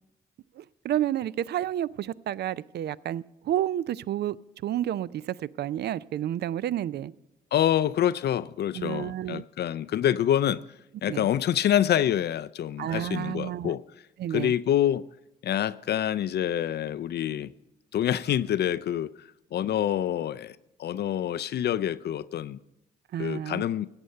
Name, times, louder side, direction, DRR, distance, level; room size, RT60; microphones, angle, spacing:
voice 1, 0.6-4.4 4.6-7.1 8.7-9.4 11.1-11.3 12.8-13.8 14.2-14.5 23.1-23.6, right 11 dB, 55° right, 0.4 m, -30 dB
voice 2, 7.5-10.6 11.0-13.8 14.3-15.0 15.4-17.5 17.9-22.6 23.2-23.9, left 11 dB, 55° left, 0.4 m, -26 dB
14.0 x 8.1 x 5.4 m
hypercardioid pair, 50°, 20 cm